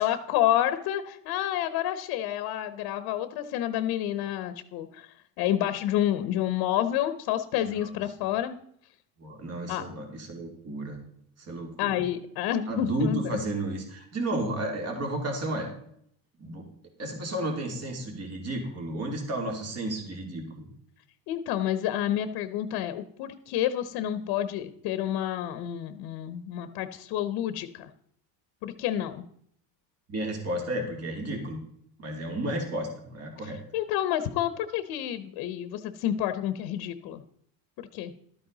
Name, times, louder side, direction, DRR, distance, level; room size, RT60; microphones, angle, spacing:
voice 1, 0.0-8.6 9.7-9.8 11.8-13.2 21.3-27.9 28.6-29.2 33.4-37.2 37.8-38.1, left 11 dB, 75° left, 11 dB, 0.9 m, -29 dB
voice 2, 7.6-8.0 9.2-11.0 11.4-12.0 12.7-15.7 16.4-16.7 17.0-20.7 30.1-31.6 32.0-33.6, right 1 dB, 40° right, 2 dB, 2.9 m, -32 dB
12.5 x 8.9 x 4.0 m, 0.67 s
cardioid pair, 140°, 38 cm